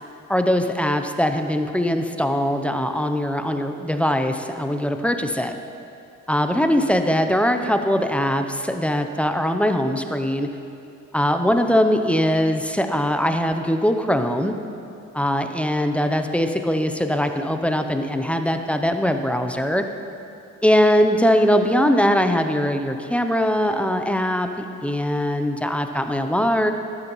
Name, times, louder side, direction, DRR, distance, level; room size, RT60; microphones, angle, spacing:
voice 1, 0.3-5.6 6.3-10.5 11.1-14.5 15.1-19.8 20.6-26.7, equal, 5° left, 6 dB, 0.6 m, -21 dB
12.0 x 9.5 x 3.0 m, 2.6 s
cardioid pair, 90°, 30 cm